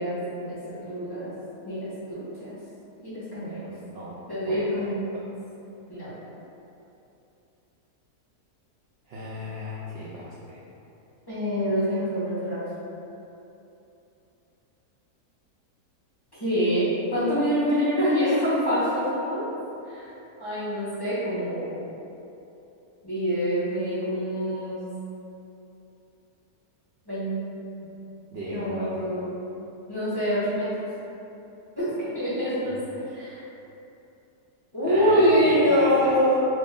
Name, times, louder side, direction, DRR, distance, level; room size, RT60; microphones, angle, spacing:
voice 1, 0.0-0.6 0.9-1.3 1.6-2.6 3.0-3.6 4.3-5.1 5.9-6.1 11.3-12.6 16.4-19.4 19.8-20.1 20.4-21.8 23.0-24.8 27.1-27.4 28.4-29.3 29.9-30.7 31.8-32.8 33.1-33.4 34.7-36.4, equal, 20° left, -14 dB, 0.8 m, -25 dB
voice 2, 0.7-1.2 3.4-4.1 4.4-4.7 9.1-10.6 28.3-29.0 32.7-32.8 34.9-36.1, equal, 75° right, -8 dB, 0.5 m, -35 dB
3.1 x 2.5 x 3.4 m, 2.9 s
omnidirectional pair, 1.6 m